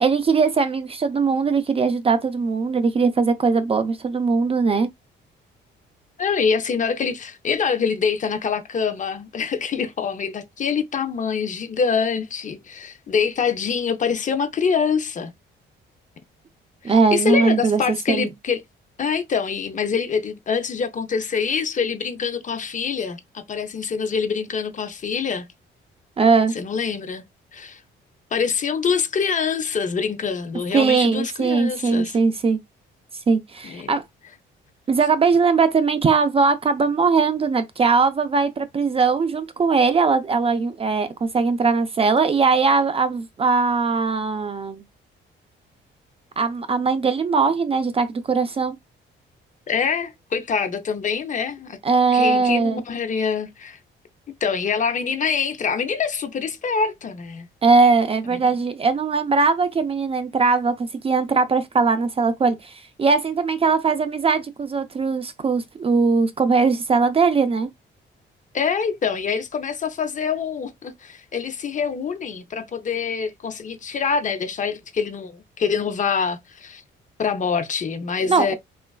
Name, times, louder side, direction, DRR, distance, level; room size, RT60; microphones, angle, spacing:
voice 1, 0.0-4.9 16.8-17.8 18.1-18.3 26.2-26.5 30.7-32.6 33.3-34.0 34.9-44.8 46.4-48.7 51.8-52.8 57.6-62.7 63.0-67.7 78.2-78.5, right 4 dB, 30° right, 0.4 m, -20 dB
voice 2, 6.2-15.3 16.8-18.6 19.0-25.5 26.5-27.2 27.5-27.8 28.3-32.2 33.6-34.0 49.7-51.8 52.1-53.8 54.4-57.5 58.3-58.5 68.5-76.8 77.2-78.5, left 6 dB, 40° left, 0.5 m, -25 dB
3.0 x 2.3 x 2.2 m
cardioid pair, 90°, 20 cm